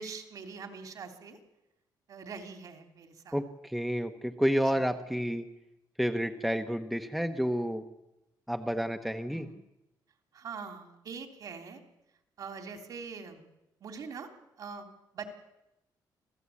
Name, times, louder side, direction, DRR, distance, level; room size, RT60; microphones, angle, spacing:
voice 1, 0.0-1.4 2.1-3.4 4.7-4.8 9.3-9.6 10.3-11.8 12.4-13.4 13.8-14.3 14.6-14.9 15.1-15.3, right 5 dB, 55° right, 6 dB, 3.2 m, -43 dB
voice 2, 3.3-5.5 6.0-7.9 8.5-9.5, equal, ahead, 6 dB, 1.0 m, -30 dB
27.0 x 16.5 x 8.5 m, 0.93 s
cardioid pair, 165°, 8 cm